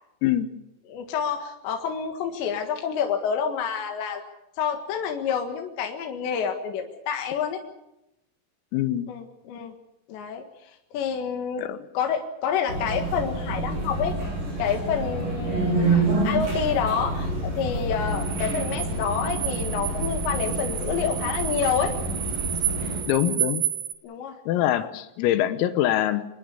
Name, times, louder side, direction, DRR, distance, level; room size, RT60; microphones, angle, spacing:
voice 1, 0.9-4.2 4.6-7.6 9.1-9.7 10.1-11.7 11.9-14.2 14.6-21.9 23.3-23.4 24.0-24.4 24.7-24.9, left 7 dB, 65° left, 3 dB, 3.7 m, -28 dB
voice 2, 8.7-9.1 11.6-11.8 23.1-23.6 24.5-26.3, left 12 dB, 90° left, 10 dB, 3.9 m, -24 dB
sound 1, 12.7-23.0, right 2 dB, 40° right, 9.5 m, -28 dB
sound 2, 18.1-23.9, right 11 dB, 70° right, 4.1 m, -31 dB
26.5 x 20.5 x 6.9 m, 0.88 s
omnidirectional pair, 5.9 m